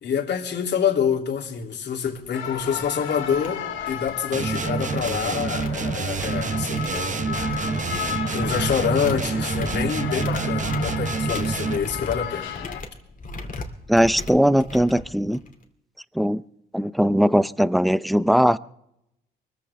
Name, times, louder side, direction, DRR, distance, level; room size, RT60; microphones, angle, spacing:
voice 1, 0.0-7.4 7.7-8.0 8.3-12.5, left 7 dB, 60° left, 1 dB, 2.9 m, -27 dB
sound 1, 1.5-1.6 2.1-2.3 2.6-2.9 3.2-4.1 4.4-15.6, left 3 dB, 40° left, 2.5 m, -38 dB
sound 2, 2.3-12.8, left 8 dB, 85° left, 2.3 m, -33 dB
sound 3, 4.3-12.0, right 5 dB, 40° right, 1.1 m, -27 dB
voice 2, 13.9-15.4 16.1-16.4 16.7-18.6, equal, ahead, 17 dB, 0.5 m, -19 dB
23.5 x 14.5 x 3.4 m, 0.79 s
cardioid pair, 90°, 20 cm